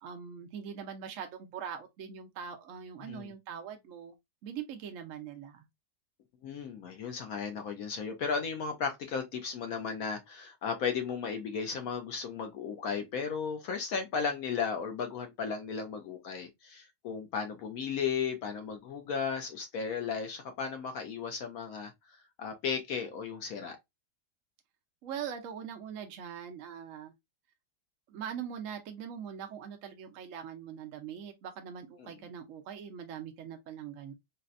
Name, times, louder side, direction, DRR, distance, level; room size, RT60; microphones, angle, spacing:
voice 1, 0.0-4.1 4.4-5.7 25.0-27.1 28.1-34.1, right 8 dB, 65° right, 0.8 m, -42 dB
voice 2, 6.4-21.9 22.4-23.8 32.0-32.1, left 6 dB, 65° left, 0.9 m, -35 dB
4.0 x 2.1 x 2.4 m
omnidirectional pair, 1.9 m